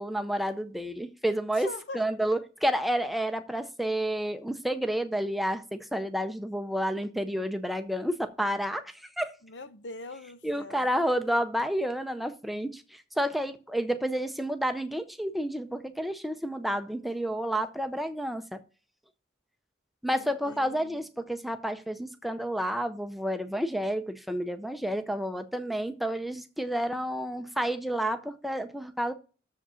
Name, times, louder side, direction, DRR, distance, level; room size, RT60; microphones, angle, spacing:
voice 1, 0.0-9.3 10.4-18.6 20.0-29.1, equal, ahead, 0.5 m, -30 dB
voice 2, 1.6-2.0 9.4-10.9 20.2-21.0, left 2 dB, 85° left, 0.8 m, -43 dB
6.9 x 5.0 x 6.9 m
head